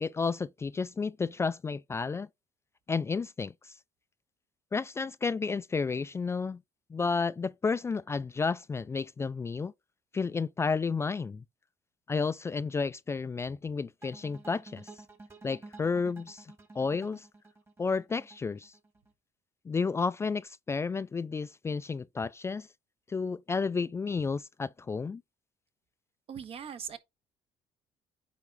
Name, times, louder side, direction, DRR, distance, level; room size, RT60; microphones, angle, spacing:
voice 1, 0.0-2.3 2.9-3.8 4.7-6.6 6.9-9.7 10.1-11.4 12.1-14.9 15.4-17.3 17.8-18.7 19.7-22.7 23.1-25.2, left 4 dB, 20° left, 0.3 m, -32 dB
sound 1, 14.0-19.1, right 3 dB, 20° right, 1.7 m, -51 dB
voice 2, 26.3-27.0, right 7 dB, 55° right, 1.4 m, -40 dB
9.1 x 3.6 x 4.6 m
cardioid pair, 95°, 12 cm